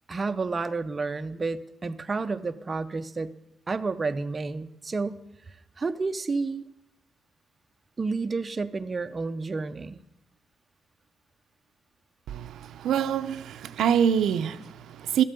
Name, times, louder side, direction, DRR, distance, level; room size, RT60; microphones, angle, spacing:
voice 1, 0.1-3.3 3.7-5.2 5.8-6.6 8.0-10.0, right 4 dB, 30° right, 0.5 m, -30 dB
voice 2, 12.3-15.2, right 8 dB, 80° right, 0.5 m, -26 dB
12.5 x 9.0 x 6.7 m
cardioid pair, 110°, 0 cm